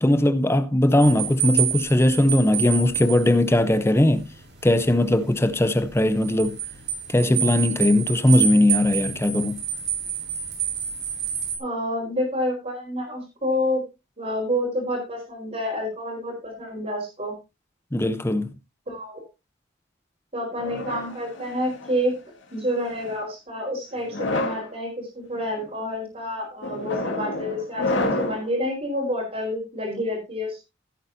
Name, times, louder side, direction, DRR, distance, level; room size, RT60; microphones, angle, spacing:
voice 1, 0.0-4.2 4.6-6.6 7.1-9.6 17.9-18.5, left 1 dB, 10° left, 0.7 m, -19 dB
sound 1, 1.0-11.6, right 8 dB, 55° right, 3.8 m, -29 dB
voice 2, 11.6-13.8 14.2-17.3 18.9-19.2 20.3-22.1 22.5-30.7, equal, 35° right, 4.4 m, -28 dB
sound 2, 20.6-22.0 22.8-23.2 24.0-24.7 25.4-25.7 26.6-28.5, left 2 dB, 60° left, 2.7 m, -29 dB
16.5 x 8.7 x 2.7 m
head